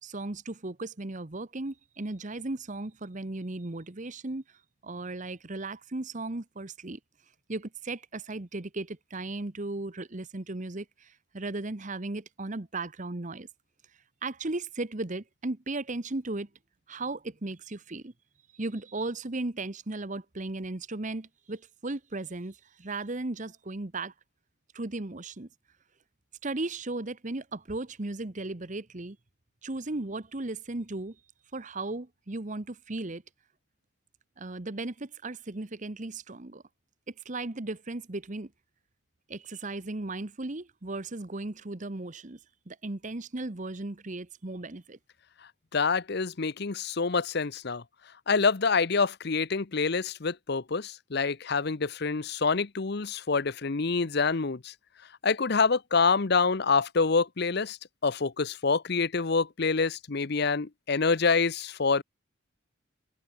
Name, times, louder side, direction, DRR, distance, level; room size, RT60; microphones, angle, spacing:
voice 1, 0.0-4.4 4.8-7.0 7.5-13.5 14.2-16.5 16.9-18.1 18.5-24.1 24.7-25.5 26.4-29.2 29.6-31.2 31.5-33.2 34.4-36.6 37.2-38.5 39.3-42.4 42.7-45.0, right 2 dB, 40° right, 1.1 m, -36 dB
voice 2, 45.7-47.8 48.3-54.7 55.2-57.8 58.0-62.0, left 4 dB, 55° left, 0.8 m, -26 dB
head